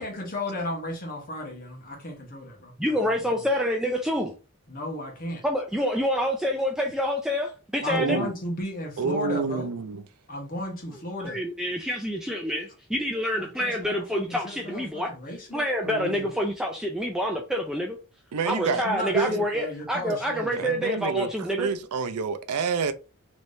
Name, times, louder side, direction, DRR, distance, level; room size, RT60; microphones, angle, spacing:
voice 1, 0.0-2.7 3.3-3.4 4.7-5.4 7.8-9.7 10.3-11.4 13.3-15.7 16.2-16.3 18.7-20.8, left 1 dB, 40° left, 1.1 m, -35 dB
voice 2, 2.8-4.3 5.4-8.3 11.2-15.1 15.5-18.0 18.5-21.7, equal, 5° right, 0.3 m, -27 dB
voice 3, 7.9-8.3 9.0-10.0 15.8-16.3 18.3-18.8 19.1-19.4 20.6-21.3 21.6-22.9, right 5 dB, 80° right, 0.4 m, -28 dB
3.3 x 3.1 x 2.6 m
head